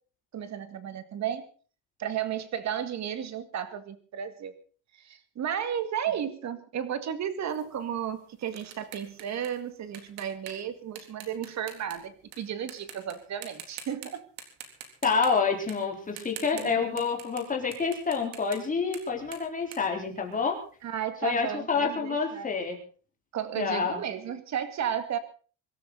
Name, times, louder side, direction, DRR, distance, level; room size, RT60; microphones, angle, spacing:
voice 1, 0.3-1.4 2.0-4.5 4.9-14.2 16.5-17.0 20.8-22.5 23.3-25.2, right 9 dB, 40° right, 11 dB, 2.1 m, -33 dB
sound 1, 7.5-12.4 12.7-13.1 13.4-14.1 14.4-17.4 17.7-20.7, right 9 dB, 70° right, 3.8 m, -45 dB
voice 2, 15.0-20.6 21.2-22.8 23.6-24.0, left 5 dB, 20° left, 1 dB, 3.9 m, -28 dB
24.5 x 13.0 x 4.0 m, 0.39 s
cardioid pair, 155°, 44 cm